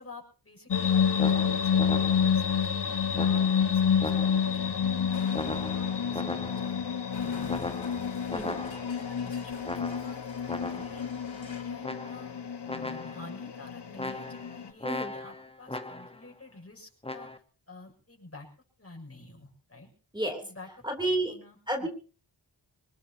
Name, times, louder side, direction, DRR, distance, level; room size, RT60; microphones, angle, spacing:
voice 1, 0.0-4.8 5.4-7.6 8.3-10.2 10.6-12.3 12.7-17.3 17.7-18.5 18.8-19.9 20.3-20.7 21.0-21.9, left 2 dB, 30° left, 1 dB, 6.9 m, -49 dB
sound 1, 0.7-14.7, left 7 dB, 60° left, 1.5 m, -29 dB
sound 2, 1.2-2.5 3.1-4.6 5.3-6.8 7.5-9.1 9.6-11.1 11.8-12.4 12.7-13.4 14.0-16.3 17.0-17.4, left 2 dB, 15° left, 1.3 m, -38 dB
Explosion, 5.1-11.8, left 4 dB, 85° left, 4.6 m, -48 dB
voice 2, 8.3-8.6 14.8-15.1 20.1-20.4 20.8-21.3 21.7-21.9, right 1 dB, 10° right, 3 dB, 3.3 m, -30 dB
24.5 x 19.5 x 2.9 m, 0.38 s
wide cardioid pair, 60°, 45 cm